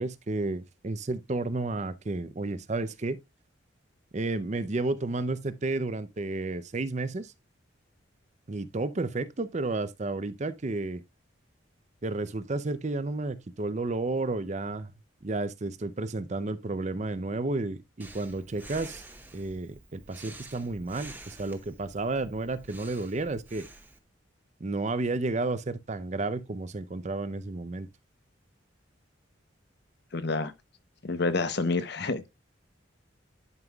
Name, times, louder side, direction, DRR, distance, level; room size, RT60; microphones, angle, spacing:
voice 1, 0.0-3.2 4.1-7.3 8.5-11.0 12.0-14.9 15.2-19.0 19.3-23.7 24.6-27.9, right 2 dB, 35° right, 0.6 m, -32 dB
Breathing, 18.0-24.0, right 2 dB, 10° right, 0.9 m, -49 dB
voice 2, 30.1-30.5 31.0-32.2, left 3 dB, 55° left, 0.8 m, -28 dB
11.0 x 5.5 x 2.3 m
head